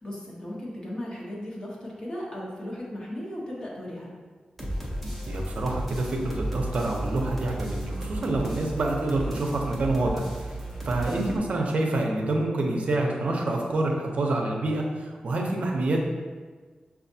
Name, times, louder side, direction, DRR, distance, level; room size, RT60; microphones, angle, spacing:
voice 1, 0.0-4.2 10.9-11.1, left 1 dB, 35° left, -4 dB, 0.9 m, -36 dB
sound 1, 4.6-11.4, right 1 dB, 5° left, 0.7 m, -34 dB
voice 2, 5.3-10.3 10.9-16.0, right 2 dB, 60° right, 1 dB, 0.6 m, -27 dB
6.2 x 2.4 x 2.6 m, 1.4 s
wide cardioid pair, 145°, 3 cm